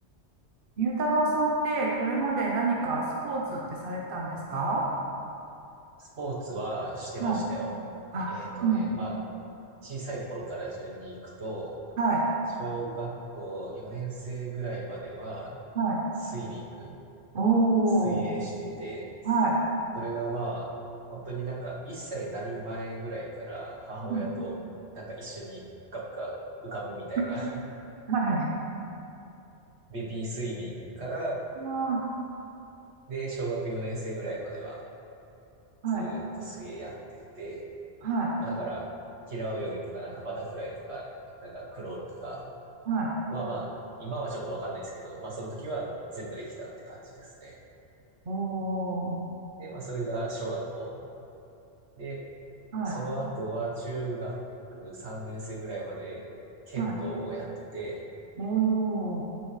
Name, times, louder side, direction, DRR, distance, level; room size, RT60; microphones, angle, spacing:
voice 1, 0.8-4.8 7.2-7.4 8.1-8.9 12.0-12.2 15.7-16.0 17.3-18.3 19.2-19.6 24.1-24.3 28.1-28.5 31.6-32.0 35.8-36.1 38.0-38.3 42.9-43.1 48.3-49.2 52.7-53.0 56.8-57.0 58.4-59.2, right 3 dB, 55° right, -2 dB, 1.1 m, -27 dB
voice 2, 6.0-7.7 8.3-9.2 9.8-11.7 12.6-15.6 16.2-16.9 18.0-19.1 19.9-20.7 21.1-24.6 24.9-25.6 25.9-26.4 26.6-27.6 29.9-31.4 33.1-34.8 35.9-37.7 38.4-38.9 39.3-41.1 41.4-42.5 43.3-43.7 44.0-47.6 49.6-51.0 51.9-52.2 52.8-54.4 54.7-56.3 56.7-58.0, right 2 dB, 75° right, -4 dB, 1.7 m, -36 dB
14.0 x 6.0 x 3.3 m, 2.8 s
omnidirectional pair, 1.1 m